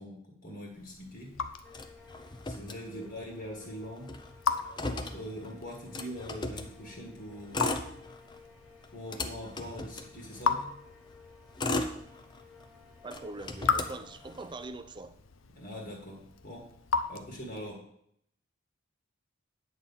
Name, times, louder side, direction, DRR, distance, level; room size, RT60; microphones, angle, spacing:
voice 1, 0.0-1.4 2.4-4.2 4.8-7.7 8.9-10.7 15.5-16.7 17.1-17.8, equal, 45° left, -1 dB, 1.7 m, -43 dB
Raindrop / Drip, 0.6-17.8, left 5 dB, 70° left, 0.7 m, -38 dB
sound 1, 1.6-14.6, left 4 dB, 5° right, 1.4 m, -56 dB
Motor vehicle (road), 1.7-3.3 3.6-3.7 4.0-6.7 7.4-8.4 8.8-10.6 11.2-12.7 13.1-14.6, left 2 dB, 20° left, 0.6 m, -37 dB
voice 2, 2.9-3.2 13.0-15.2, right 2 dB, 20° right, 11 dB, 0.5 m, -43 dB
9.3 x 4.3 x 7.3 m, 0.71 s
head